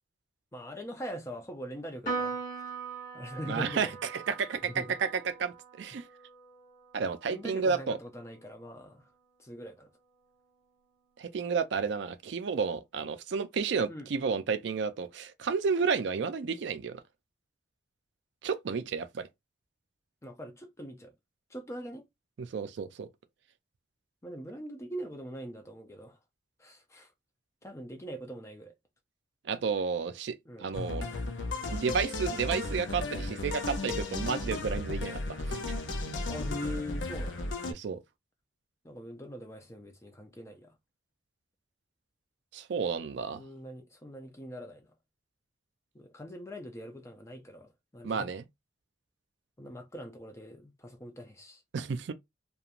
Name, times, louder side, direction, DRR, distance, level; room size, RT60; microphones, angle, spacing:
voice 1, 0.5-2.6 3.1-3.9 4.6-5.0 7.2-9.1 9.4-9.9 13.9-14.1 20.2-21.1 21.5-22.1 24.2-26.2 26.6-27.1 27.6-28.7 30.5-30.7 36.3-37.5 38.8-40.7 43.4-44.9 45.9-48.4 49.6-51.6, equal, 15° left, 0.4 m, -42 dB
Piano, 2.1-8.7, right 4 dB, 45° left, 1.4 m, -41 dB
voice 2, 3.5-6.0 6.9-8.0 11.2-17.0 18.4-19.3 22.4-23.1 29.5-31.0 31.7-35.2 35.5-35.7 37.7-38.0 42.5-43.4 48.0-48.4 51.7-52.1, right 5 dB, 65° right, 0.4 m, -31 dB
sound 1, 30.7-37.7, left 2 dB, 75° left, 0.5 m, -34 dB
2.9 x 2.2 x 2.4 m
head